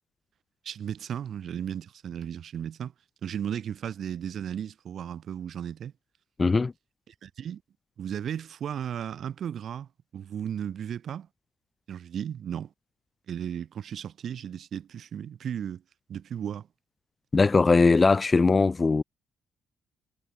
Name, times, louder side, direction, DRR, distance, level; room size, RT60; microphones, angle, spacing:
voice 1, 0.6-2.9 3.2-5.9 7.1-7.6 8.0-11.3 11.9-12.7 13.3-15.8 16.1-16.7, right 9 dB, 60° right, 7.1 m, -35 dB
voice 2, 6.4-6.7 17.3-19.0, left 4 dB, 30° left, 1.8 m, -20 dB
cardioid pair, 90°, 0 cm